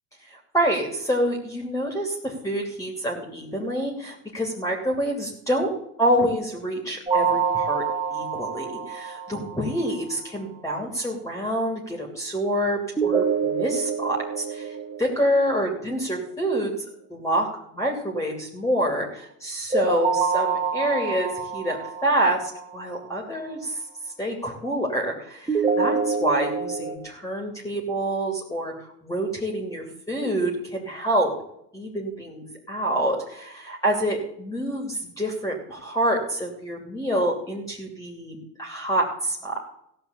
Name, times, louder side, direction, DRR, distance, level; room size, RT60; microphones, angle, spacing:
voice 1, 0.2-5.7 6.0-7.8 8.1-16.7 17.1-17.5 17.7-23.8 24.2-31.3 31.7-39.6, right 1 dB, 5° left, 1 dB, 2.9 m, -27 dB
sound 1, 7.1-10.0 13.0-16.0 19.7-22.9 25.5-27.0, right 5 dB, 10° right, 2.3 m, -26 dB
16.0 x 5.8 x 8.1 m, 0.75 s
supercardioid pair, 95°, 45 cm